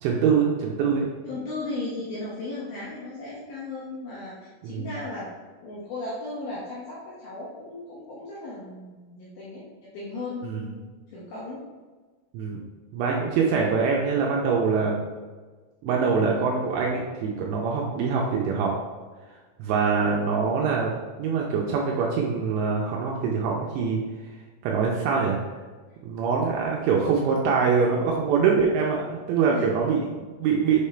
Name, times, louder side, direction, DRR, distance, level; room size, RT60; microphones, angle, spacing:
voice 1, 0.0-1.1 4.6-4.9 10.4-10.7 12.3-12.6 12.9-15.0 15.8-18.8 19.6-24.0 24.6-25.4 26.0-30.9, right 5 dB, 80° right, -2 dB, 2.7 m, -24 dB
voice 2, 1.2-5.3 5.6-10.8 11.1-11.6 29.5-29.6, left 2 dB, 70° left, -7 dB, 2.3 m, -36 dB
7.3 x 3.5 x 4.2 m, 1.4 s
omnidirectional pair, 5.7 m